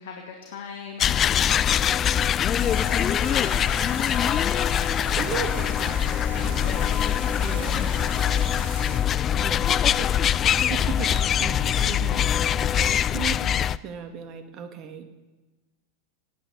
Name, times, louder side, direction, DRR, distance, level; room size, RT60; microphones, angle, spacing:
voice 1, 0.0-2.0 2.8-3.8 6.6-6.9, left 6 dB, 70° left, 3 dB, 2.1 m, -41 dB
sound 1, 1.0-13.8, left 9 dB, 35° left, 0.4 m, -23 dB
sound 2, 2.6-9.0, right 4 dB, 70° right, 3.7 m, -40 dB
voice 2, 4.8-6.9 7.4-8.1 9.3-10.1 10.7-15.1, right 7 dB, 45° right, 8 dB, 2.2 m, -37 dB
18.0 x 9.3 x 8.2 m, 1.1 s
hypercardioid pair, 90°, 0 cm